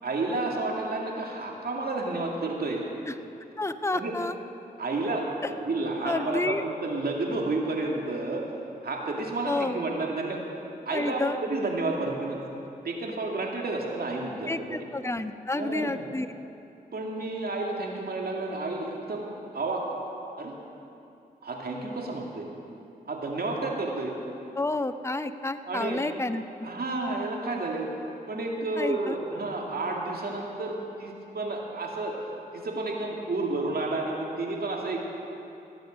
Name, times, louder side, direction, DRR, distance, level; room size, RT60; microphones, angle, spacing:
voice 1, 0.0-2.9 3.9-4.1 4.8-8.4 8.8-10.4 10.9-12.5 12.8-14.9 15.5-16.0 16.9-19.2 19.5-19.8 20.4-20.6 21.4-22.5 23.1-24.1 25.7-26.0 26.6-27.9 28.3-32.1 32.5-35.0, right 2 dB, 60° right, 0 dB, 2.4 m, -31 dB
voice 2, 3.6-4.4 6.0-6.6 9.5-9.8 10.9-11.4 14.5-16.3 24.6-26.7 28.8-29.2, left 2 dB, 15° left, 10 dB, 0.7 m, -30 dB
19.5 x 7.9 x 6.3 m, 2.8 s
supercardioid pair, 40°, 18 cm